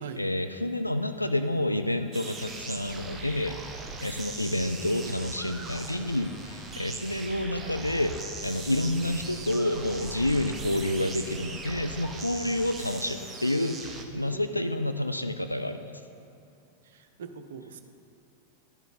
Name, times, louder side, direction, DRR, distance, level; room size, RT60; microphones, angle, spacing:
voice 1, 0.2-3.6 4.0-8.2 8.4-15.9, left 1 dB, 85° left, 8 dB, 0.3 m, -29 dB
sound 1, 2.1-14.1, right 3 dB, 20° right, 0.7 m, -40 dB
sound 2, 2.6-12.1, left 1 dB, 35° left, 1.1 m, -48 dB
voice 2, 13.9-14.9 16.8-17.8, right 6 dB, 60° right, 8 dB, 0.5 m, -43 dB
12.0 x 5.0 x 4.1 m, 2.6 s
figure-of-eight pair, 90°, 0 cm